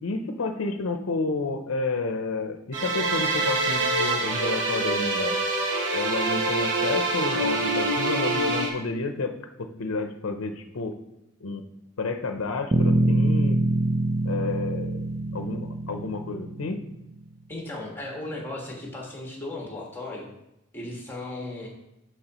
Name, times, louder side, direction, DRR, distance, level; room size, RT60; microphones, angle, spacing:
voice 1, 0.0-5.4 5.9-11.0 11.4-11.6 12.0-13.6 14.2-15.1 15.3-16.8, left 3 dB, 85° left, 6 dB, 0.7 m, -30 dB
sound 1, 2.7-8.7, right 2 dB, 60° right, 1.2 m, -25 dB
Bass guitar, 12.7-17.1, right 1 dB, 30° right, 0.6 m, -25 dB
voice 2, 17.5-20.3 20.7-21.7, left 2 dB, 10° left, -2 dB, 1.5 m, -36 dB
12.0 x 4.6 x 3.0 m, 0.85 s
head